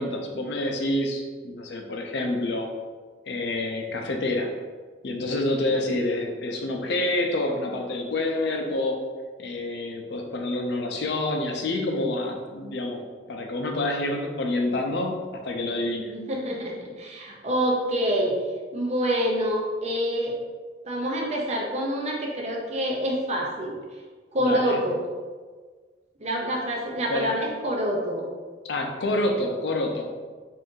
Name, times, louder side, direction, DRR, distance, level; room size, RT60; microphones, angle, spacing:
voice 1, 0.0-2.7 3.3-4.5 5.0-9.0 9.4-13.0 13.3-16.1 24.4-24.8 27.1-27.3 28.6-30.1, left 2 dB, 70° left, 2 dB, 0.5 m, -27 dB
voice 2, 16.0-18.4 18.7-20.3 20.8-23.8 24.3-25.0 26.2-28.3, equal, 40° right, -1 dB, 0.6 m, -26 dB
2.6 x 2.6 x 3.6 m, 1.5 s
head